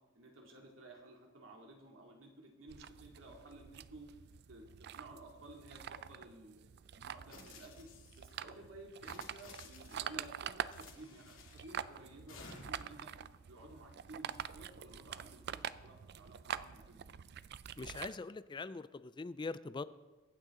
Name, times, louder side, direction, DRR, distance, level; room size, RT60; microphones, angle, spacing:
voice 1, 0.1-4.1 4.5-4.6 4.9-7.9 8.2-13.1 13.5-17.0, right 2 dB, 80° right, 0 dB, 2.5 m, -54 dB
sound 1, 2.7-18.2, right 9 dB, 55° right, 0.4 m, -46 dB
sound 2, 7.3-8.3 9.0-10.1 10.7-11.7 12.3-12.9, left 4 dB, 90° left, 2.2 m, -55 dB
voice 2, 17.8-19.8, left 3 dB, 25° left, 15 dB, 0.4 m, -42 dB
23.5 x 9.2 x 3.8 m, 1.2 s
head